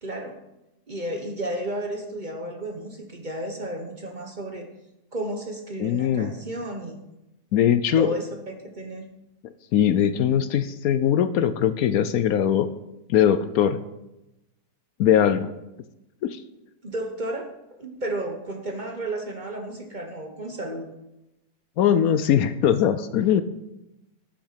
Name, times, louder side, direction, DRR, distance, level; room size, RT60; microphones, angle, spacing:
voice 1, 0.0-0.4 0.9-4.7 5.1-7.0 8.0-9.1 16.8-20.9, right 1 dB, 35° right, 4 dB, 1.2 m, -32 dB
voice 2, 5.8-6.3 7.5-8.1 9.7-12.7 13.1-13.8 15.0-15.5 16.2-16.4 21.8-23.4, left 9 dB, 70° left, 13 dB, 1.0 m, -21 dB
11.5 x 7.2 x 5.7 m, 0.93 s
omnidirectional pair, 1.7 m